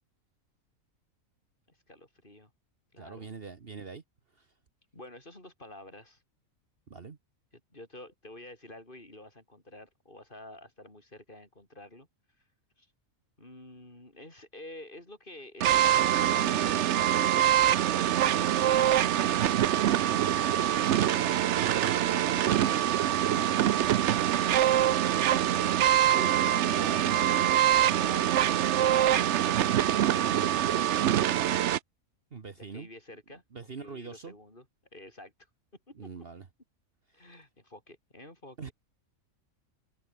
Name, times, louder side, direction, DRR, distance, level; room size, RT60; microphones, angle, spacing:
voice 1, 1.7-2.5 2.9-3.3 4.9-6.2 7.5-12.1 12.4-12.5 12.8-12.9 13.4-21.5 22.0-23.9 26.4-31.5 32.6-33.4 33.8-34.7 34.9-35.3 35.9-36.1 37.1-38.7, left 1 dB, 40° left, 5.5 m, -50 dB
voice 2, 3.0-4.0 4.4-4.5 6.9-7.2 20.4-20.6 25.8-26.4 26.7-27.2 32.3-32.9 33.5-34.3 36.0-36.5 38.6-38.7, right 5 dB, 45° right, 1.4 m, -43 dB
sound 1, 15.6-31.8, right 11 dB, 65° right, 0.9 m, -24 dB
omnidirectional pair, 1.4 m